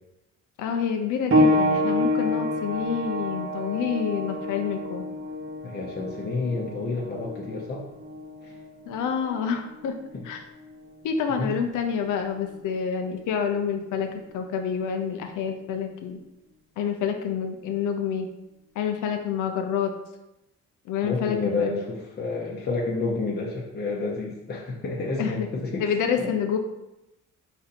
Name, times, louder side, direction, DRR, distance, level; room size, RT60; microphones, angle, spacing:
voice 1, 0.6-5.0 8.9-9.9 10.2-10.4 11.0-16.2 16.8-18.3 18.7-19.9 20.8-21.7 25.2-26.6, left 7 dB, 85° left, 5 dB, 0.6 m, -28 dB
sound 1, 1.3-11.5 12.5-12.6 13.3-13.4, left 1 dB, 45° right, 0.8 m, -28 dB
voice 2, 5.6-7.8 8.4-8.5 10.1-10.2 11.4-11.6 21.0-25.9 26.2-26.3, left 3 dB, 35° left, -3 dB, 0.7 m, -29 dB
4.1 x 2.7 x 4.1 m, 0.92 s
cardioid pair, 90°, 30 cm